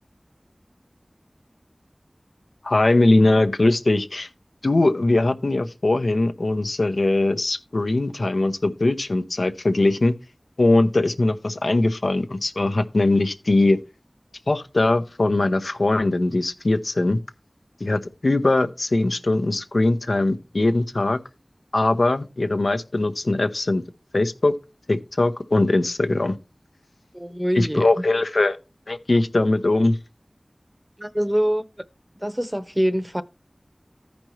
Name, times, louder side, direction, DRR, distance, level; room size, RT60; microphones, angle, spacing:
voice 1, 2.6-4.3 4.6-10.1 10.6-13.8 14.5-17.2 17.8-21.2 21.7-23.8 24.1-24.5 24.9-26.4 27.5-28.6 28.9-30.0, left 2 dB, 80° left, 0.8 m, -21 dB
voice 2, 27.1-27.9 31.0-31.6 32.2-33.2, equal, 10° right, 0.8 m, -24 dB
15.0 x 5.2 x 3.0 m
wide cardioid pair, 45°, 0 cm